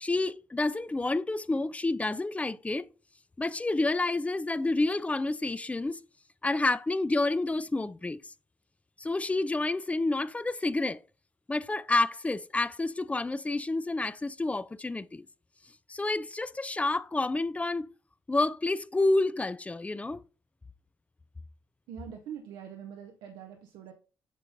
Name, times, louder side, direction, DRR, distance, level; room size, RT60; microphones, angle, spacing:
voice 1, 0.0-2.9 3.4-6.0 6.4-8.2 9.0-11.0 11.5-15.3 15.9-17.9 18.3-20.2, left 2 dB, 15° left, 0.4 m, -29 dB
voice 2, 21.9-23.9, right 8 dB, 85° right, 0.8 m, -43 dB
7.5 x 3.8 x 3.9 m
supercardioid pair, 65°, 8 cm